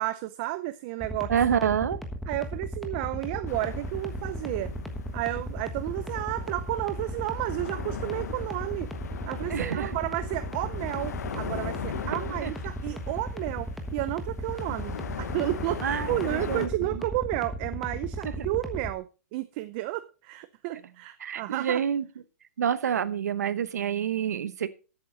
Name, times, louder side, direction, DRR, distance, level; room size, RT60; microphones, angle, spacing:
voice 1, 0.0-1.3 2.3-4.7 5.1-8.9 9.2-14.9 15.2-21.8, right 17 dB, 40° right, 0.6 m, -32 dB
sound 1, 1.0-18.9, equal, ahead, 1.3 m, -35 dB
voice 2, 1.3-2.0 9.5-10.0 12.4-12.5 15.8-17.0 18.2-18.3 21.2-22.0 22.6-24.7, right 8 dB, 85° right, 1.1 m, -28 dB
sound 2, 3.5-16.7, left 8 dB, 80° left, 1.3 m, -40 dB
13.5 x 8.5 x 4.0 m
hypercardioid pair, 150°, 9 cm